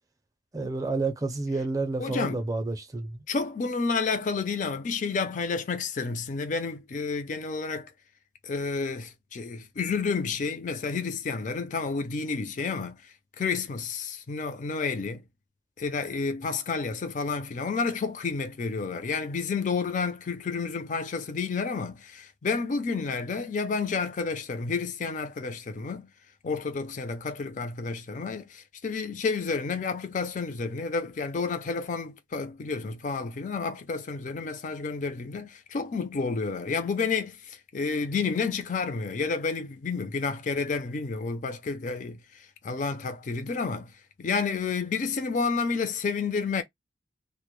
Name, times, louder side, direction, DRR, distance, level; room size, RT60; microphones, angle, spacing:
voice 1, 0.5-3.1, right 3 dB, 20° right, 0.5 m, -29 dB
voice 2, 2.0-2.5 3.3-7.9 8.4-15.2 15.8-26.1 26.4-43.9 44.2-46.6, left 4 dB, 45° left, 0.4 m, -30 dB
2.1 x 2.0 x 3.0 m
head